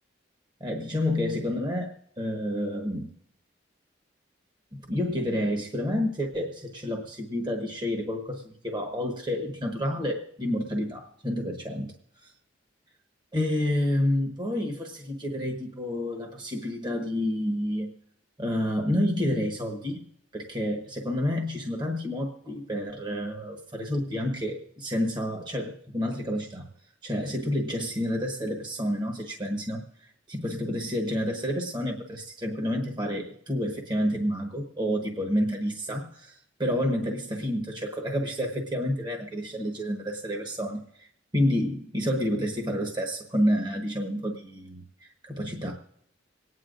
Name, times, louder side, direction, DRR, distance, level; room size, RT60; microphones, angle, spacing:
voice 1, 0.6-3.1 4.7-11.9 12.2-12.3 13.3-17.9 18.4-20.0 20.3-26.7 27.0-29.8 30.3-41.1 41.3-45.7, left 1 dB, 25° right, 2 dB, 1.2 m, -29 dB
26.0 x 9.6 x 2.5 m, 0.71 s
head